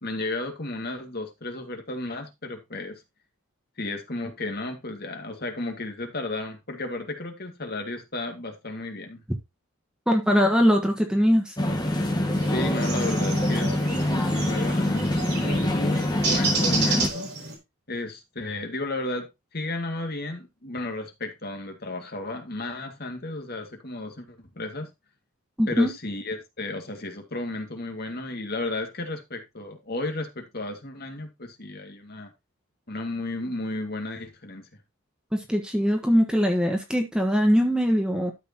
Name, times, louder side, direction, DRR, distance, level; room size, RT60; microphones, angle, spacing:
voice 1, 0.0-3.0 3.8-9.2 12.5-17.3 17.9-24.9 25.7-32.3 32.9-34.7, left 2 dB, 45° left, 2.2 m, -33 dB
voice 2, 10.1-11.5 25.6-25.9 35.3-38.3, equal, 5° right, 1.3 m, -21 dB
sound 1, 11.6-17.1, left 1 dB, 20° left, 1.8 m, -25 dB
sound 2, 12.3-17.5, right 3 dB, 50° right, 4.3 m, -31 dB
12.5 x 6.8 x 3.0 m
head